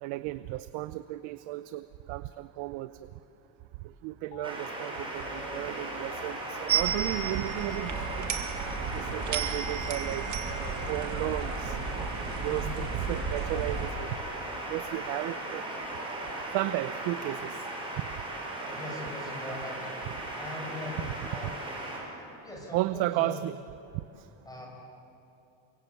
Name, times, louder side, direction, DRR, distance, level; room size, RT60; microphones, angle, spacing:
voice 1, 0.0-2.9 3.8-8.3 8.9-10.3 10.9-11.8 12.4-14.1 14.7-15.6 16.5-17.6 18.6-19.0 22.7-23.6, right 16 dB, 70° right, 13 dB, 0.8 m, -34 dB
sound 1, 4.3-4.5 4.9-14.7, left 4 dB, 85° left, 6.4 m, -48 dB
sound 2, 4.4-22.0, right 2 dB, 10° right, 7.1 m, -37 dB
sound 3, 6.7-13.9, right 7 dB, 35° right, 2.2 m, -33 dB
voice 2, 12.5-12.8 18.7-19.9 20.3-21.7 22.4-23.4 24.4-24.7, left 2 dB, 5° left, -1 dB, 6.5 m, -41 dB
28.5 x 24.5 x 8.4 m, 2.8 s
cardioid pair, 150°, 49 cm